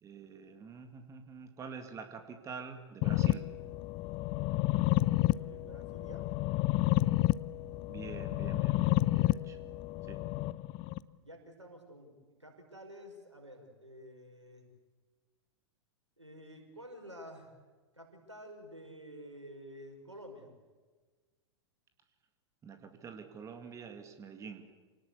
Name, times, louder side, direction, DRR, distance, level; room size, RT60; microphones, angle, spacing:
voice 1, 0.0-3.4 7.9-9.6 10.1-10.2 22.6-24.6, right 6 dB, 20° right, 6 dB, 2.1 m, -46 dB
sound 1, 3.0-11.0, left 17 dB, 35° left, 0.7 m, -30 dB
voice 2, 5.2-6.3 11.2-14.7 16.2-17.5 17.9-20.5, equal, 85° right, 3 dB, 5.3 m, -50 dB
27.5 x 19.0 x 8.4 m, 1.4 s
figure-of-eight pair, 95°, 15 cm